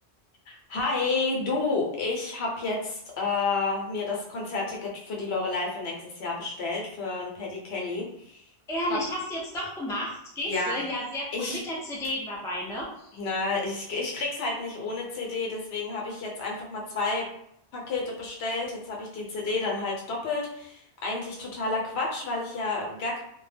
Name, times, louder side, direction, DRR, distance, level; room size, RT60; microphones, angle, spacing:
voice 1, 0.5-8.4 10.5-10.8 11.3-11.6 13.1-17.3 17.7-23.2, left 3 dB, 80° left, -2 dB, 0.9 m, -30 dB
voice 2, 8.7-13.2, left 1 dB, 5° left, -4 dB, 0.3 m, -32 dB
2.1 x 2.1 x 3.2 m, 0.72 s
omnidirectional pair, 1.1 m